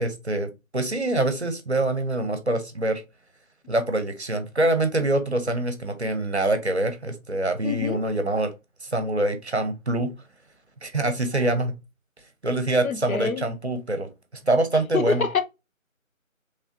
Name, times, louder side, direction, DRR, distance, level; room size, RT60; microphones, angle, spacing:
voice 1, 0.0-3.0 3.7-8.5 8.8-10.1 10.8-11.7 12.4-14.1 14.4-15.2, right 2 dB, 50° right, 0.7 m, -25 dB
voice 2, 7.6-8.0 12.8-13.4 14.9-15.4, left 5 dB, 80° left, 0.7 m, -25 dB
3.1 x 2.9 x 2.5 m
figure-of-eight pair, 175°, 41 cm